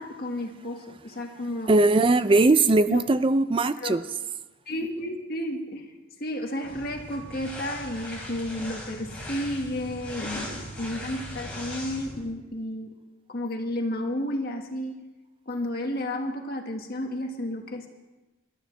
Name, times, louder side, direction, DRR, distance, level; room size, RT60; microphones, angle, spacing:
voice 1, 0.0-1.8 2.9-3.0 3.8-4.0 4.7-5.9 6.2-12.9 13.3-15.0 15.5-17.9, left 1 dB, 45° left, 1.6 m, -32 dB
voice 2, 1.7-4.0, right 2 dB, 25° right, 0.4 m, -20 dB
sound 1, 6.6-12.2, equal, 5° left, 3.7 m, -39 dB
26.0 x 12.5 x 3.3 m
head